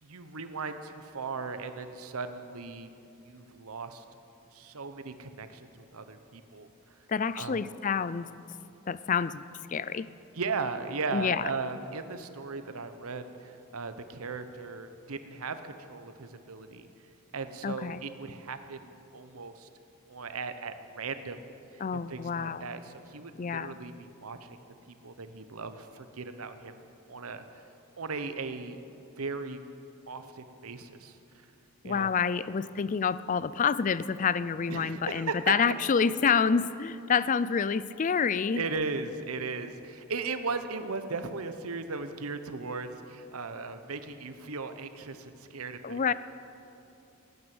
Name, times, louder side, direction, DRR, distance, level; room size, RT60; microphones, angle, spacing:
voice 1, 0.0-2.9 3.2-4.0 4.5-7.0 7.3-7.6 10.3-16.9 17.3-19.7 20.1-24.6 24.9-26.8 27.1-27.7 28.0-28.8 29.2-29.6 30.1-31.2 31.8-32.1 34.7-35.5 38.5-46.1, right 4 dB, 85° right, 9 dB, 0.9 m, -37 dB
voice 2, 7.1-8.3 8.9-10.1 11.1-11.5 17.6-18.0 21.8-22.7 23.4-23.8 31.8-38.6 45.8-46.1, left 6 dB, 35° left, 16 dB, 0.4 m, -28 dB
18.0 x 9.5 x 7.8 m, 2.8 s
head